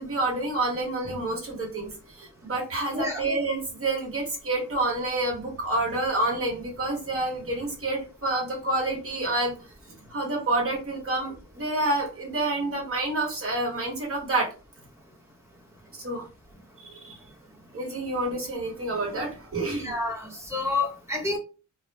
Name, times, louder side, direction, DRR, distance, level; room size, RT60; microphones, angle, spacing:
voice 1, 0.0-9.5 9.9-14.5 15.9-16.3 16.8-17.1 17.7-19.9, right 2 dB, 45° right, -1 dB, 1.1 m, -28 dB
voice 2, 2.9-3.2 19.8-21.4, left 3 dB, 10° right, -2 dB, 1.0 m, -29 dB
2.2 x 2.0 x 3.3 m, 0.35 s
wide cardioid pair, 115°, 30 cm